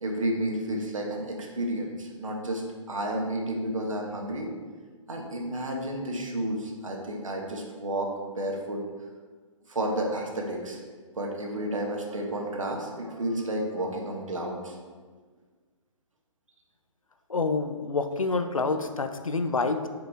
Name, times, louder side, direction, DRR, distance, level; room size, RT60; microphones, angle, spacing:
voice 1, 0.0-4.5 5.1-8.8 9.7-10.8 11.2-14.7, right 1 dB, 70° right, 1 dB, 1.4 m, -31 dB
voice 2, 17.3-19.9, left 3 dB, 80° left, 8 dB, 0.6 m, -27 dB
7.8 x 4.9 x 3.5 m, 1.5 s
figure-of-eight pair, 125°, 17 cm